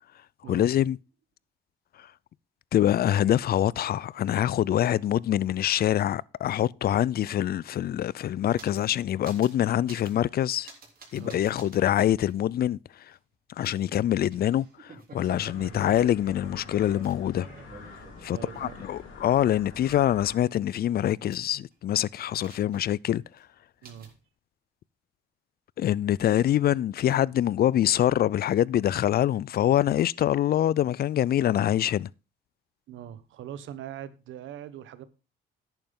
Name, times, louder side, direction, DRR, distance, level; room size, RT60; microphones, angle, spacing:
voice 1, 0.5-1.0 2.0-2.1 2.7-10.7 11.1-12.8 13.6-17.5 18.2-23.2 25.8-32.1, left 11 dB, 50° left, 0.4 m, -25 dB
sound 1, 7.6-9.0 9.2-9.6 9.9-10.2 10.6-11.8 12.3-12.4 13.6-19.4 19.7-21.7 22.2-23.1 23.3-23.4 23.8-24.2, right 3 dB, 45° right, 3.6 m, -50 dB
voice 2, 11.2-11.5 15.6-15.8 18.3-18.9 23.8-24.2 32.9-35.1, right 10 dB, 80° right, 1.0 m, -42 dB
sound 2, 15.2-20.3, left 4 dB, 85° left, 3.8 m, -46 dB
11.0 x 9.0 x 3.8 m
cardioid pair, 90°, 20 cm